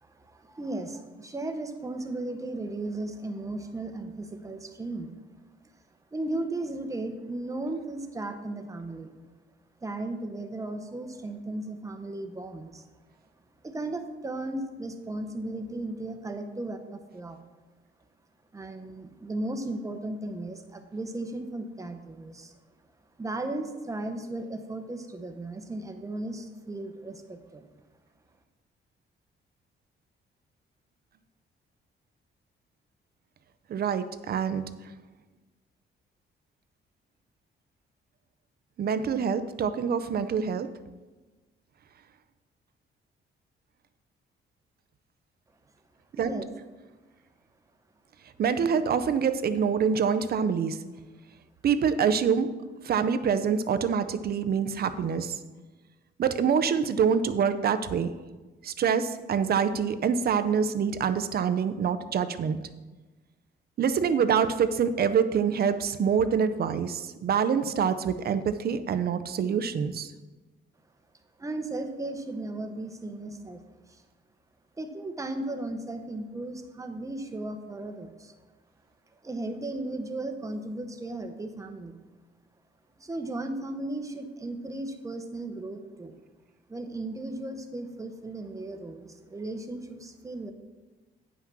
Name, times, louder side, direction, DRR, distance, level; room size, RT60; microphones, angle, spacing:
voice 1, 0.0-5.1 6.1-9.1 9.8-12.8 13.6-17.4 18.5-22.5 23.2-27.6 46.2-46.4 71.4-74.0 74.8-78.3 79.2-81.9 83.0-86.1 86.7-90.5, right 2 dB, 15° right, 6 dB, 0.9 m, -36 dB
voice 2, 33.7-34.6 38.8-40.7 46.2-46.3 48.4-50.8 51.6-52.5 52.8-55.4 56.2-58.1 58.6-62.6 63.8-70.1, right 7 dB, 50° right, 11 dB, 0.6 m, -26 dB
9.5 x 5.8 x 6.1 m, 1.2 s
cardioid pair, 140°, 20 cm